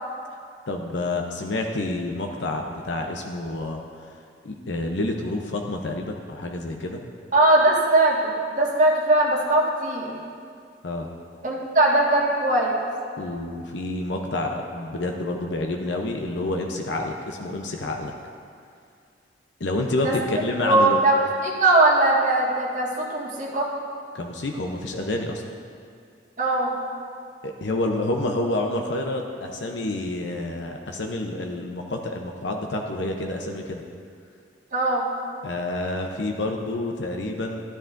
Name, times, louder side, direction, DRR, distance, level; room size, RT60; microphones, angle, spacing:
voice 1, 0.7-3.8 4.4-7.0 10.8-11.1 13.2-18.1 19.6-21.0 24.1-25.4 27.4-33.8 35.4-37.6, left 2 dB, 90° left, 2 dB, 0.7 m, -28 dB
voice 2, 7.3-10.1 11.4-12.7 20.0-20.1 20.6-23.7 26.4-26.7 34.7-35.1, right 2 dB, 45° right, -5 dB, 1.8 m, -20 dB
13.0 x 9.9 x 2.6 m, 2.3 s
head